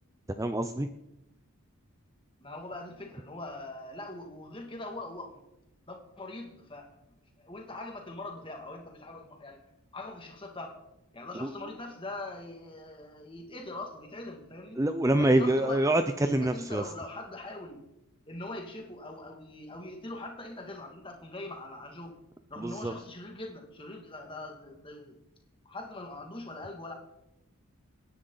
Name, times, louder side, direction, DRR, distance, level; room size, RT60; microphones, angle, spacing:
voice 1, 0.4-0.9 11.4-11.5 14.8-16.8 22.6-22.9, right 1 dB, 15° right, 9 dB, 0.5 m, -26 dB
voice 2, 2.4-5.4 5.9-7.1 7.4-9.6 9.9-10.8 11.1-14.8 15.2-15.8 16.4-17.8 18.3-22.2 22.5-25.2 25.7-26.9, left 2 dB, 25° left, 3 dB, 2.2 m, -42 dB
26.5 x 10.0 x 4.0 m, 0.89 s
head